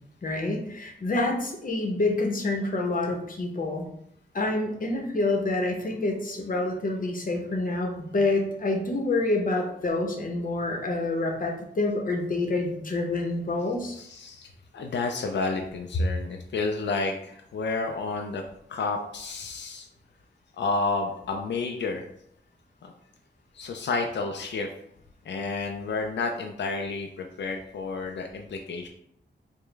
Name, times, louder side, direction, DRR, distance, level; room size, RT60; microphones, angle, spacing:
voice 1, 0.2-3.9 4.3-14.0, left 2 dB, 50° left, 1 dB, 0.8 m, -27 dB
voice 2, 13.6-18.4 18.7-19.9 20.5-22.1 22.8-22.9 23.5-24.7 25.2-28.9, left 3 dB, 90° left, 3 dB, 0.4 m, -31 dB
4.9 x 2.2 x 3.3 m, 0.72 s
wide cardioid pair, 130°, 18 cm